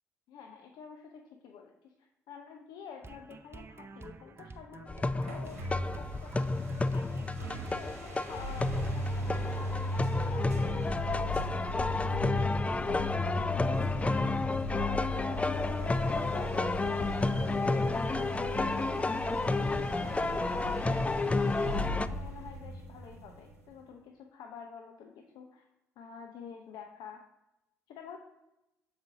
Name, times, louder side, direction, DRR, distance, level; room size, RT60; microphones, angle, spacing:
voice 1, 0.3-7.4 7.7-9.8 10.2-14.4 14.7-17.5 18.0-19.2 19.6-25.7 26.0-27.2 27.9-28.2, left 6 dB, 65° left, 3 dB, 0.6 m, -49 dB
sound 1, 3.0-8.5 8.8-9.0 9.3-9.5, right 3 dB, 30° right, 0.6 m, -50 dB
sound 2, 4.9-22.1, left 3 dB, 15° left, 0.3 m, -31 dB
sound 3, 5.2-23.7, left 1 dB, 90° right, 1.0 m, -36 dB
7.2 x 4.9 x 3.8 m, 0.93 s
hypercardioid pair, 45°, 8 cm